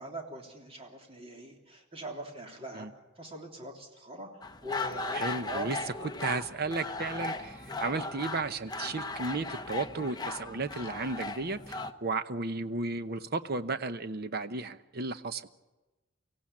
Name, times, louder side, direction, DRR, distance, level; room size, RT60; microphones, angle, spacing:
voice 1, 0.0-2.9 3.2-5.7, right 1 dB, 30° right, 2 dB, 3.2 m, -42 dB
sound 1, 4.4-11.9, left 3 dB, 20° left, 0.8 m, -37 dB
voice 2, 5.1-15.5, right 3 dB, 50° right, 12 dB, 0.9 m, -34 dB
24.5 x 16.5 x 8.7 m, 1.1 s
head